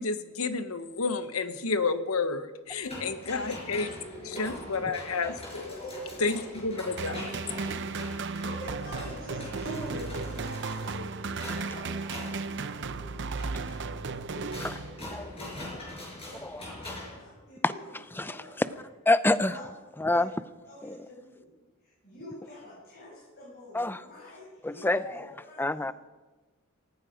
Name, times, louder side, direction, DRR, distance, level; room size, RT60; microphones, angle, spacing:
voice 1, 0.0-3.9 4.2-5.8 6.2-7.4, left 4 dB, 80° left, 10 dB, 1.1 m, -31 dB
sound 1, 2.7-17.2, left 1 dB, 30° left, 6.0 m, -43 dB
voice 2, 2.8-4.4 5.7-6.4 6.8-7.0 8.2-13.8 14.3-17.9 18.2-18.8 19.4-19.7 20.1-20.2 20.6-21.5 21.8-25.9, left 1 dB, 50° left, -7 dB, 7.4 m, -46 dB
sound 2, 7.0-15.3, right 4 dB, 55° right, 0.7 m, -35 dB
voice 3, 18.2-18.7 19.1-19.6 20.0-20.3 20.8-21.0 23.7-24.1 24.6-25.0 25.6-25.9, left 2 dB, 10° left, 13 dB, 0.5 m, -26 dB
19.0 x 14.5 x 5.1 m, 1.2 s
head